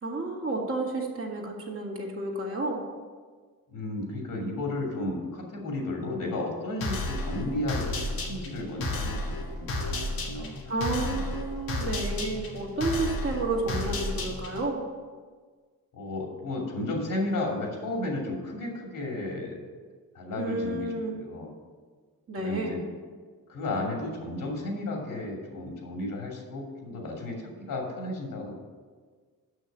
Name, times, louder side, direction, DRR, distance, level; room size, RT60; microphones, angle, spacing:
voice 1, 0.0-2.8 10.7-14.8 20.4-21.2 22.3-22.8, right 2 dB, 40° right, -2 dB, 2.1 m, -31 dB
voice 2, 3.7-10.6 10.8-11.2 15.9-19.6 20.1-21.5 22.4-22.8 23.5-28.5, left 2 dB, 65° left, -1 dB, 2.7 m, -33 dB
sound 1, 6.8-14.7, left 2 dB, 80° left, 1.7 m, -32 dB
6.4 x 6.2 x 7.5 m, 1.5 s
cardioid pair, 75°, 35 cm